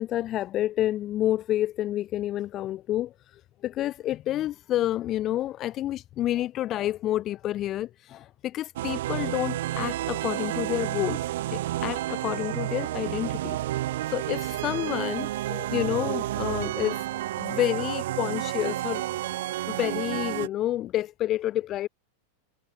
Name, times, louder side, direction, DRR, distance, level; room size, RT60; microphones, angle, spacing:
voice 1, 0.0-17.1 17.4-19.1 19.7-21.9, left 13 dB, 35° left, 0.8 m, -29 dB
sound 1, 8.8-20.5, right 14 dB, 55° right, 0.6 m, -30 dB
figure-of-eight pair, 90°, 0 cm